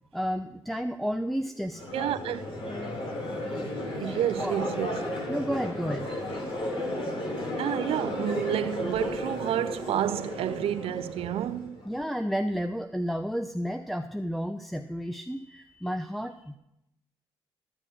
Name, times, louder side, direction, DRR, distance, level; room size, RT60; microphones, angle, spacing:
voice 1, 0.1-1.8 4.0-4.1 4.4-4.6 5.3-6.1 11.9-16.6, equal, ahead, 0.7 m, -31 dB
Crowd, 1.7-11.9, left 1 dB, 60° left, 3.3 m, -34 dB
voice 2, 1.9-2.4 4.0-5.0 7.6-11.8, right 11 dB, 75° right, 0.6 m, -30 dB
14.0 x 7.5 x 6.4 m
supercardioid pair, 55°, 10 cm